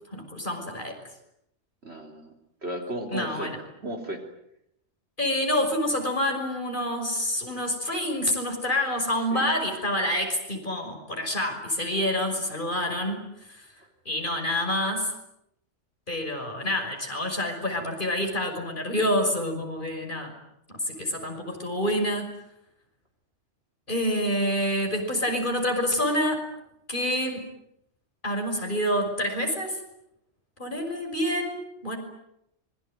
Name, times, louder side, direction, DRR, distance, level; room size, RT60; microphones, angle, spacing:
voice 1, 0.1-1.0 3.1-3.6 5.2-13.2 13.5-13.6 14.0-15.1 16.1-20.3 20.7-22.3 23.9-26.4 26.9-27.5 28.2-29.8 30.6-32.0, left 1 dB, 45° left, 3 dB, 6.2 m, -27 dB
voice 2, 1.8-2.3 2.6-3.5 3.8-4.2 9.3-9.5 13.8-13.9, right 1 dB, 65° right, 4 dB, 4.0 m, -34 dB
26.0 x 22.5 x 9.3 m, 0.80 s
omnidirectional pair, 1.2 m